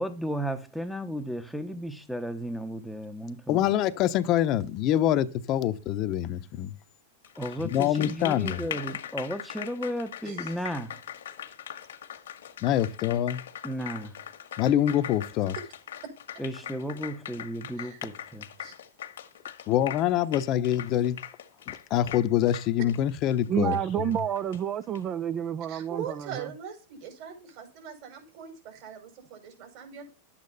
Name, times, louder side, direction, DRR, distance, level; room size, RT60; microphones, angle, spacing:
voice 1, 0.0-3.7 7.4-11.0 13.6-14.2 16.4-18.5, equal, ahead, 1.0 m, -34 dB
voice 2, 3.5-6.7 7.7-8.6 12.6-13.4 14.6-15.5 19.7-21.2 21.7-23.8, left 11 dB, 45° left, 0.9 m, -25 dB
Applause, 7.2-25.0, left 10 dB, 85° left, 1.6 m, -41 dB
voice 3, 10.2-10.6 17.8-18.0 18.6-18.7 25.7-30.1, right 8 dB, 50° right, 5.3 m, -41 dB
voice 4, 23.5-26.3, right 9 dB, 30° right, 0.6 m, -29 dB
11.5 x 8.6 x 4.2 m
hypercardioid pair, 125°, 0 cm